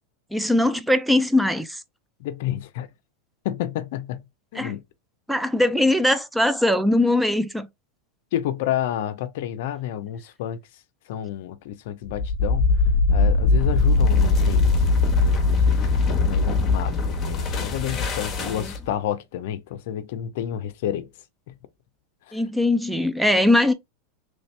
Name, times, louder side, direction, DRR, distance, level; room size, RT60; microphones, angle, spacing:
voice 1, 0.3-1.8 4.6-4.7 5.3-7.7 18.4-18.7 22.3-23.7, left 1 dB, 5° right, 0.4 m, -21 dB
voice 2, 2.2-2.9 3.4-4.2 4.5-4.8 8.3-10.6 11.1-12.7 13.1-21.1 21.5-21.6 22.3-22.4, left 11 dB, 65° left, 0.5 m, -30 dB
sound 1, 12.1-18.9, left 3 dB, 30° left, 1.0 m, -21 dB
3.2 x 2.6 x 3.2 m
hypercardioid pair, 110°, 0 cm